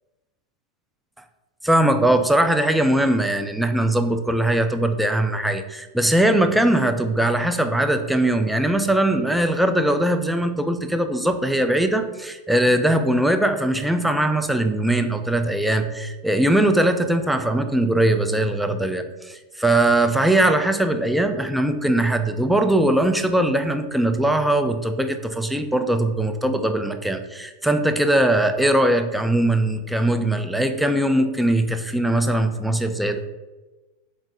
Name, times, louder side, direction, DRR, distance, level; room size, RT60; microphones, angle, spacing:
voice 1, 1.6-33.2, right 1 dB, 5° right, 7 dB, 0.3 m, -20 dB
3.6 x 2.4 x 3.9 m, 1.2 s
hypercardioid pair, 105°, 0 cm